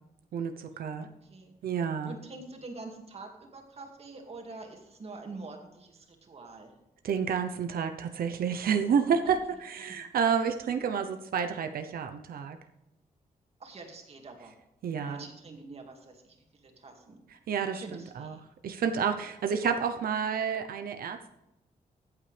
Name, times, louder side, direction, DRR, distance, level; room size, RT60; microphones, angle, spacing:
voice 1, 0.3-1.1 1.6-2.1 7.0-12.6 14.8-15.2 17.5-18.4 18.6-21.3, right 7 dB, 85° right, 7 dB, 0.8 m, -30 dB
voice 2, 1.0-1.5 2.0-6.7 9.2-9.3 9.8-10.0 13.6-14.5 15.0-17.2 17.7-18.4, right 3 dB, 45° right, 3 dB, 2.2 m, -45 dB
14.0 x 8.6 x 3.4 m, 0.91 s
wide cardioid pair, 145°, 15 cm